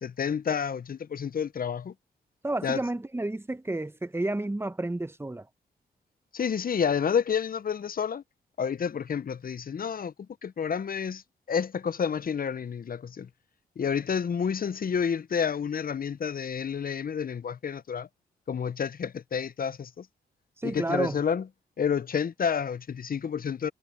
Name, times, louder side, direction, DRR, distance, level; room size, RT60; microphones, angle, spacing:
voice 1, 0.0-1.9 2.6-2.8 6.3-8.2 8.6-10.1 10.4-11.2 11.5-13.3 13.8-18.1 18.5-20.1 20.6-21.4 21.8-23.7, left 7 dB, 50° left, 1.0 m, -29 dB
voice 2, 2.4-5.5 20.6-21.2, right 2 dB, 10° right, 1.2 m, -30 dB
hypercardioid pair, 40°, 19 cm